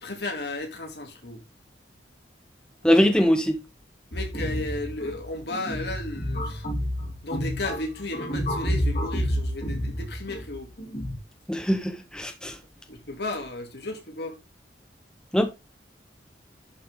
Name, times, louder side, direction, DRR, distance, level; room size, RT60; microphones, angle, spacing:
voice 1, 0.0-1.4 2.9-3.0 4.1-6.6 7.2-10.7 12.9-14.3, left 2 dB, 60° left, 2.5 m, -34 dB
voice 2, 2.8-3.6 11.5-12.5 15.3-15.5, equal, 5° left, 0.9 m, -21 dB
sound 1, 4.1-11.2, equal, 45° left, 3.5 m, -30 dB
11.0 x 6.6 x 3.6 m
head